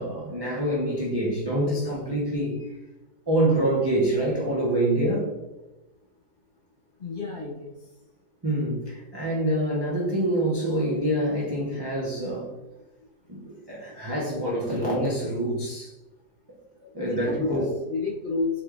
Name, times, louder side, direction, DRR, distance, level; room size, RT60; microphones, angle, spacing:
voice 1, 0.0-2.7 3.3-5.3 8.4-12.5 13.3-15.9 16.9-17.7, right 1 dB, 30° right, -5 dB, 0.5 m, -26 dB
voice 2, 7.0-7.7 17.1-18.6, left 3 dB, 35° left, -5 dB, 1.2 m, -30 dB
4.2 x 3.2 x 2.4 m, 1.0 s
omnidirectional pair, 1.7 m